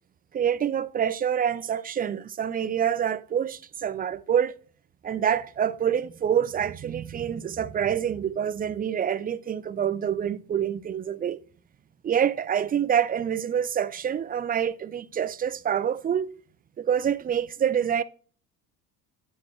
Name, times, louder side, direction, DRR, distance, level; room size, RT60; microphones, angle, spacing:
voice 1, 0.3-4.5 5.0-11.4 12.0-16.3 16.8-18.0, right 8 dB, 25° right, 0.4 m, -26 dB
9.6 x 4.5 x 3.1 m
supercardioid pair, 95°, 39 cm